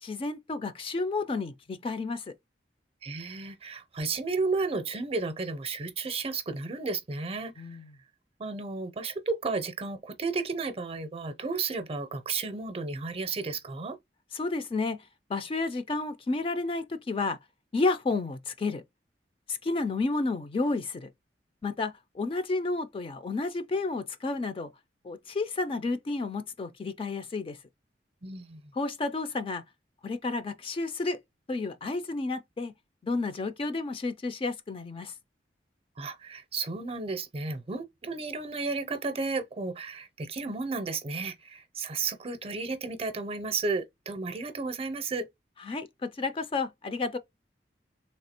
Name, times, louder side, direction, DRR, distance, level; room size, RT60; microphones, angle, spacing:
voice 1, 0.0-2.3 7.6-7.9 14.3-15.0 15.3-17.4 17.7-18.8 19.5-21.1 21.6-24.7 25.0-27.6 28.7-29.6 30.0-31.2 31.5-32.7 33.0-35.1 45.6-47.2, left 3 dB, 30° left, 0.4 m, -31 dB
voice 2, 3.0-7.7 8.4-14.0 28.2-28.6 36.0-45.3, right 4 dB, 35° right, 0.5 m, -33 dB
3.3 x 2.7 x 4.2 m
head